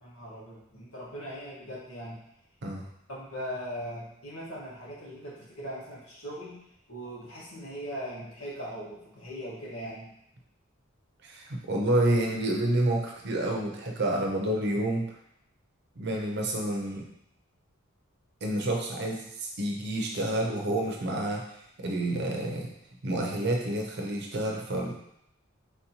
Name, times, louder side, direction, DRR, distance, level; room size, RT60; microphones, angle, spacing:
voice 1, 0.0-2.2 3.1-6.6 6.9-10.1, equal, 85° left, -6 dB, 1.4 m, -40 dB
voice 2, 11.2-15.1 16.0-17.0 18.4-21.4 21.8-22.7 23.0-25.0, right 1 dB, 55° right, 1 dB, 0.6 m, -29 dB
4.3 x 2.8 x 2.8 m, 0.76 s
head